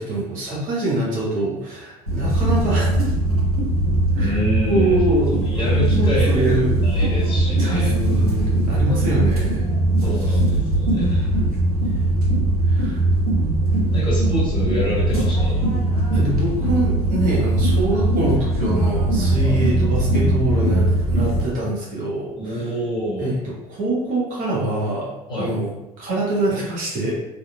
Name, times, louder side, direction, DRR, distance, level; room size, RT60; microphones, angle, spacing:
voice 1, 0.0-2.9 4.1-4.4 4.7-5.6 5.9-6.8 7.6-9.7 10.2-10.4 12.7-13.0 14.3-14.4 16.1-22.7 23.2-27.1, right 1 dB, 45° right, -5 dB, 1.1 m, -24 dB
sound 1, 2.1-21.4, right 1 dB, 85° right, 0.6 m, -20 dB
voice 2, 4.2-5.0 5.4-7.9 10.0-11.2 13.9-15.7 19.4-19.6 22.4-23.4 25.3-25.5, equal, 25° left, -6 dB, 1.4 m, -26 dB
3.5 x 2.4 x 2.2 m, 0.95 s
figure-of-eight pair, 60°, 19 cm